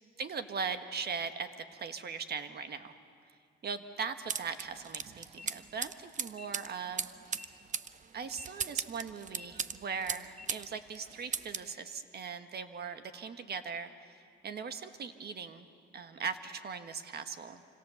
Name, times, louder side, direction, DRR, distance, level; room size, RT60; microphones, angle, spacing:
voice 1, 0.2-2.9 3.6-7.6 8.1-14.2 14.4-15.6 15.9-17.6, right 5 dB, 55° right, 8 dB, 1.6 m, -39 dB
sound 1, 4.3-10.7 10.9-11.7, right 6 dB, 40° right, 0.8 m, -38 dB
sound 2, 5.3-5.5 6.3-6.5 7.3-7.5 8.3-8.5 9.3-9.5 10.3-10.5, left 4 dB, 5° left, 2.0 m, -51 dB
28.0 x 25.5 x 7.2 m, 2.3 s
cardioid pair, 90°, 20 cm